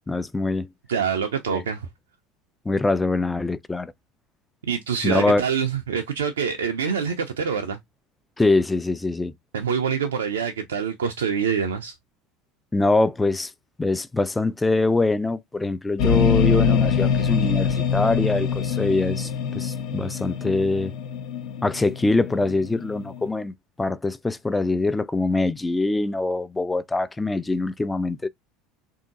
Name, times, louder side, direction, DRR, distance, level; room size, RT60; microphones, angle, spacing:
voice 1, 0.1-0.7 1.5-1.6 2.7-3.9 5.0-5.4 8.4-9.3 12.7-13.5 13.8-20.9 21.6-23.5 23.8-28.3, left 2 dB, 15° left, 0.4 m, -23 dB
voice 2, 0.9-1.9 4.7-7.8 9.5-11.9, right 7 dB, 85° right, 0.5 m, -25 dB
sound 1, 16.0-23.3, left 6 dB, 65° left, 0.8 m, -24 dB
3.6 x 2.7 x 2.4 m
hypercardioid pair, 75°, 0 cm